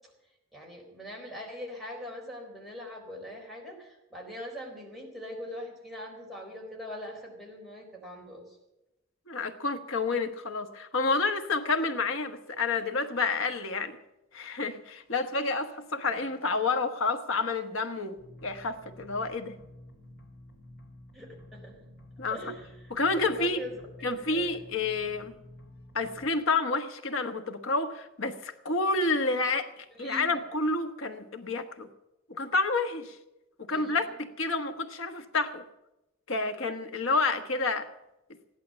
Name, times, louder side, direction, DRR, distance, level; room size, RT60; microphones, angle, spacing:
voice 1, 0.5-8.4 21.1-21.8 22.2-23.7 24.3-24.5 29.9-30.4 33.7-34.1, equal, ahead, -2 dB, 4.0 m, -42 dB
voice 2, 9.3-14.0 14.3-18.1 18.4-19.6 22.2-22.4 22.9-23.6 24.0-25.3 25.9-29.7 30.0-31.9 32.3-33.1 33.6-35.6 36.3-37.9, left 3 dB, 75° left, 8 dB, 1.3 m, -29 dB
sound 1, 18.2-26.3, left 1 dB, 60° left, 2.7 m, -51 dB
15.5 x 11.5 x 7.6 m, 0.95 s
head